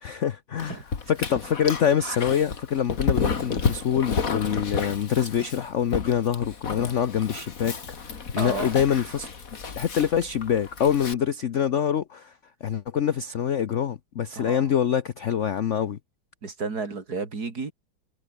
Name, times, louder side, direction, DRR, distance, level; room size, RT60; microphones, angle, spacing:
voice 1, 0.0-0.8 1.1-9.3 9.7-12.3 12.6-16.0, left 8 dB, 60° left, 0.8 m, -25 dB
Dog, 0.6-11.1, left 5 dB, 45° left, 2.3 m, -31 dB
voice 2, 8.4-8.7 14.3-14.7 16.4-17.7, right 4 dB, 50° right, 3.5 m, -32 dB
omnidirectional pair, 2.2 m